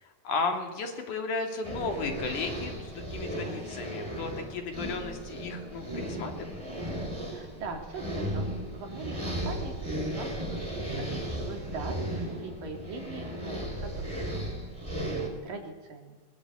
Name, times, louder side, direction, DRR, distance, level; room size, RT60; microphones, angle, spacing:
voice 1, 0.0-6.6, left 4 dB, 65° left, 4 dB, 4.1 m, -34 dB
sound 1, 1.6-15.3, right 1 dB, 10° right, 4.2 m, -35 dB
voice 2, 7.3-8.5 8.7-14.3 14.6-16.2, right 3 dB, 75° right, 3 dB, 5.0 m, -42 dB
23.0 x 22.0 x 8.4 m, 1.3 s
omnidirectional pair, 4.0 m